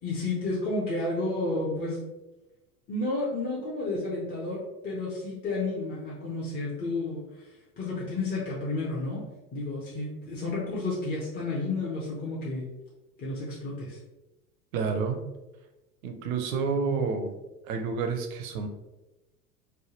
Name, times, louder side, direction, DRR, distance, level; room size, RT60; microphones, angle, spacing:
voice 1, 0.0-2.0 2.9-7.5 7.8-9.2 9.5-12.7 13.2-14.0, left 2 dB, 20° left, -6 dB, 0.6 m, -31 dB
voice 2, 14.7-15.2 16.0-17.4 17.6-18.7, right 5 dB, 60° right, 5 dB, 0.7 m, -29 dB
3.3 x 2.1 x 2.9 m, 1.0 s
figure-of-eight pair, 80°, 48 cm